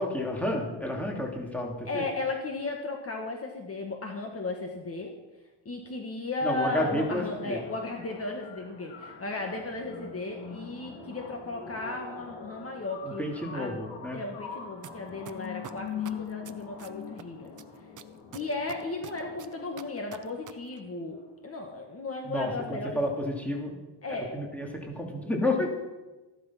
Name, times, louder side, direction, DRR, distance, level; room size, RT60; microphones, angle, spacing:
voice 1, 0.0-2.0 6.4-7.6 13.0-14.2 22.2-23.8 24.2-25.7, left 1 dB, 5° left, -1 dB, 2.8 m, -31 dB
voice 2, 1.9-5.1 5.7-13.2 13.5-13.8 14.1-17.5 18.3-23.0 24.0-24.4, left 3 dB, 30° left, 2 dB, 1.8 m, -35 dB
sound 1, 6.8-20.8, left 7 dB, 80° left, 2.8 m, -43 dB
sound 2, 14.8-14.9 15.3-17.2 17.6-20.5 20.8-20.9, right 9 dB, 45° right, 0.9 m, -45 dB
15.0 x 12.0 x 5.9 m, 1.1 s
cardioid pair, 135°, 43 cm